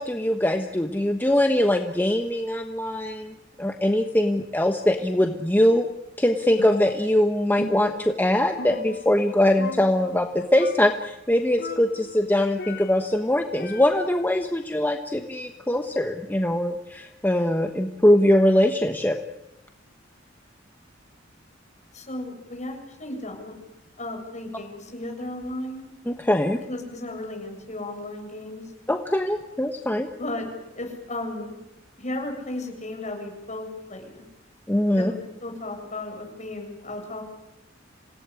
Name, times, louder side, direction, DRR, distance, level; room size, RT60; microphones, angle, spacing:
voice 1, 0.0-5.9 6.2-19.2 26.1-26.6 28.9-30.1 34.7-35.1, left 1 dB, 10° left, 5 dB, 1.2 m, -22 dB
Percussion, 6.6-7.3 7.6-9.3 9.6-10.3 10.6-11.1 11.6-13.2 13.6-14.3, left 2 dB, 55° left, 1.2 m, -38 dB
voice 2, 21.9-23.6 24.0-25.9 26.7-28.6 30.2-30.5 30.7-31.6 32.0-34.2 35.0-37.2, left 1 dB, 40° left, 3 dB, 7.3 m, -34 dB
27.0 x 18.0 x 9.8 m, 0.91 s
head